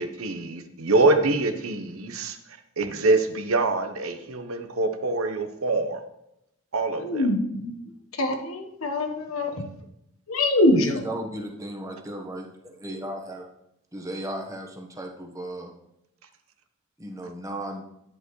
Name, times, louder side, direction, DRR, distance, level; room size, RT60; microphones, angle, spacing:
voice 1, 0.0-2.4 2.8-6.0 6.7-7.3, right 2 dB, 85° right, 8 dB, 1.0 m, -24 dB
voice 2, 7.0-7.7 8.1-9.5 10.3-11.0, left 1 dB, 80° left, 4 dB, 1.2 m, -23 dB
voice 3, 10.8-13.5 13.9-15.7 17.0-17.8, right 1 dB, 15° right, 2 dB, 1.2 m, -35 dB
11.0 x 8.0 x 3.2 m, 0.81 s
head